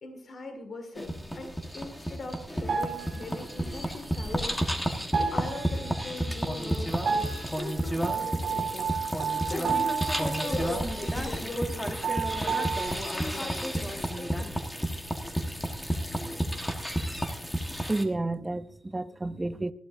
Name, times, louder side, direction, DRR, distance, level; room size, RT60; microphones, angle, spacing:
voice 1, 0.0-10.0 10.4-11.9 12.4-12.8 13.1-14.6, left 2 dB, 40° left, 1.9 m, -40 dB
sound 1, 1.0-18.0, equal, 5° left, 1.3 m, -31 dB
sound 2, 2.7-3.6 3.9-4.8 5.1-6.3 7.0-11.3 11.6-11.7 12.0-12.9, right 6 dB, 60° right, 1.8 m, -32 dB
voice 2, 17.9-19.7, right 2 dB, 15° right, 0.5 m, -30 dB
19.5 x 14.5 x 2.6 m
wide cardioid pair, 155°, 0 cm